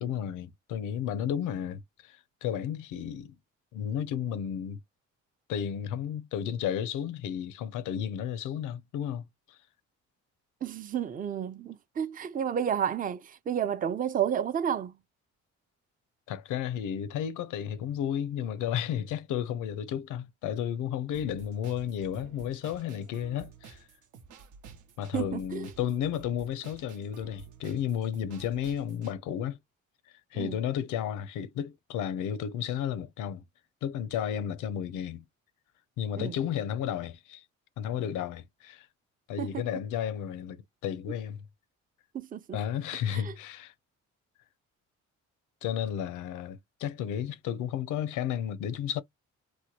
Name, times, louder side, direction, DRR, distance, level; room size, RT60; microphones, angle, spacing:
voice 1, 0.0-3.4 3.7-4.8 5.5-9.6 16.3-23.8 25.0-29.6 30.3-33.4 33.8-35.3 36.0-37.4 37.8-38.9 39.3-41.4 42.5-43.7 45.6-49.0, left 9 dB, 85° left, 0.6 m, -33 dB
voice 2, 10.6-14.9 25.1-25.7 30.3-30.6 36.2-36.3 39.4-39.6 42.1-42.6 43.1-43.3, right 9 dB, 30° right, 0.4 m, -31 dB
sound 1, 21.1-29.1, right 6 dB, 80° right, 0.9 m, -51 dB
3.0 x 2.2 x 2.8 m
cardioid pair, 90°, 30 cm